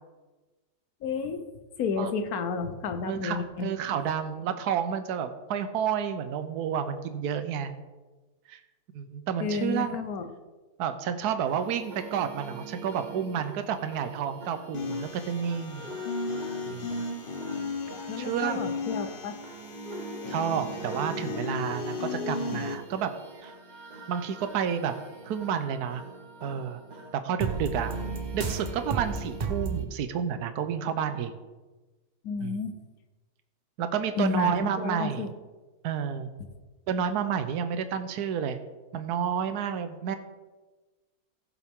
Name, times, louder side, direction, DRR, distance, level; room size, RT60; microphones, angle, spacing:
voice 1, 1.0-1.4 1.8-3.7 9.4-10.3 18.1-19.3 32.2-32.7 34.2-35.3, left 5 dB, 70° left, 9 dB, 1.4 m, -31 dB
voice 2, 3.1-7.7 8.5-8.6 8.9-10.0 10.8-15.9 16.6-17.1 18.2-18.7 20.3-23.1 23.4-23.5 24.1-24.9 25.2-26.0 26.4-26.8 27.1-27.9 28.3-31.3 32.4-32.6 33.8-35.3 35.8-36.3 36.9-38.6 38.9-40.2, right 8 dB, 80° right, 9 dB, 1.3 m, -30 dB
sound 1, 11.4-29.9, right 4 dB, 35° right, 0.9 m, -39 dB
sound 2, 14.7-22.8, left 3 dB, 40° left, 1.1 m, -35 dB
16.0 x 7.2 x 3.6 m, 1.2 s
omnidirectional pair, 1.6 m